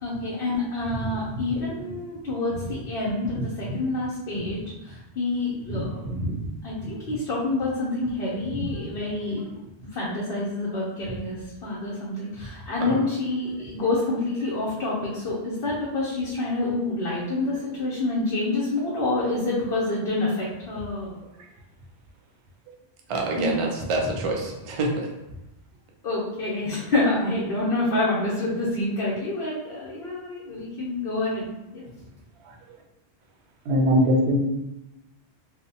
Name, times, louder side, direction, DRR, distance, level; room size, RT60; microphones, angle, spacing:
voice 1, 0.0-6.0 6.6-9.5 9.9-21.2 23.4-23.5 26.0-31.9, left 2 dB, 65° left, -6 dB, 0.8 m, -27 dB
voice 2, 23.1-25.1, right 2 dB, 60° right, 0 dB, 0.3 m, -27 dB
voice 3, 33.7-34.4, equal, 75° right, 0 dB, 0.8 m, -20 dB
2.7 x 2.0 x 2.6 m, 0.92 s
omnidirectional pair, 1.1 m